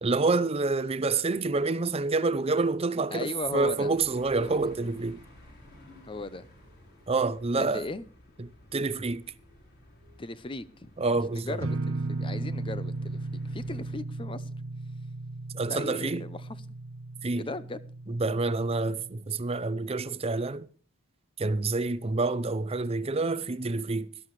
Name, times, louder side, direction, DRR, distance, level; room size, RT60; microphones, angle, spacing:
voice 1, 0.0-5.2 7.1-7.8 8.4-9.2 11.0-11.6 15.5-16.3 17.2-17.5 18.1-20.7 21.4-24.1, right 3 dB, 25° right, 0.6 m, -28 dB
voice 2, 3.1-3.9 4.4-4.6 6.0-6.4 7.6-8.0 10.2-14.5 15.7-16.5 17.4-17.8, left 2 dB, 25° left, 0.7 m, -37 dB
sound 1, 3.4-14.0, left 1 dB, 45° left, 4.7 m, -54 dB
sound 2, 11.6-19.2, right 2 dB, 65° right, 0.8 m, -36 dB
17.5 x 12.5 x 3.2 m
head